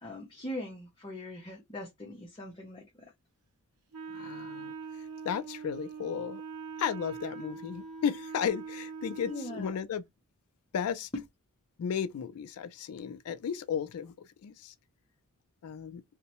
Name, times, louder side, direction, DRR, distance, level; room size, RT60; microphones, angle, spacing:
voice 1, 0.0-3.1 9.2-9.7, left 1 dB, 25° left, 0.6 m, -41 dB
Wind instrument woodwind instrument, 3.9-9.8, right 5 dB, 90° right, 0.6 m, -42 dB
voice 2, 4.1-4.7 5.2-6.4 6.8-10.0 10.7-11.1 11.8-14.7 15.6-16.0, left 7 dB, 75° left, 0.3 m, -34 dB
2.6 x 2.1 x 2.9 m
head